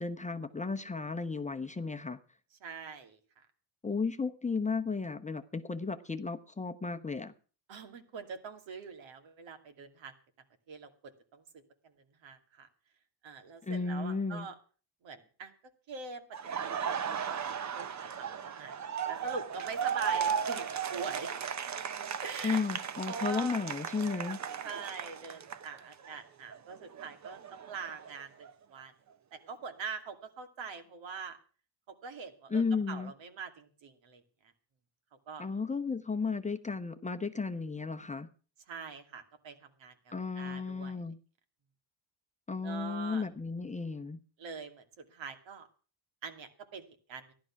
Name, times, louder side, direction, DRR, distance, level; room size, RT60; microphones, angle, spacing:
voice 1, 0.0-2.2 3.8-7.3 13.6-14.5 22.4-24.4 32.5-33.1 35.4-38.3 40.1-41.2 42.5-44.2, left 4 dB, 15° left, 7 dB, 0.9 m, -34 dB
voice 2, 2.6-3.5 7.7-10.1 10.7-10.9 11.3-11.9 12.2-12.7 13.2-14.5 15.0-15.5 15.9-16.3 16.6-18.8 19.1-21.3 22.2-22.6 23.1-23.7 24.6-28.9 29.3-31.4 31.9-34.2 35.3-35.4 38.7-40.9 42.6-43.2 44.4-45.7 46.2-47.3, right 5 dB, 70° right, 7 dB, 2.6 m, -44 dB
Laughter, 16.3-26.2 26.5-28.5, right 7 dB, 35° right, 0.9 m, -36 dB
14.5 x 11.5 x 5.9 m, 0.38 s
cardioid pair, 120°, 47 cm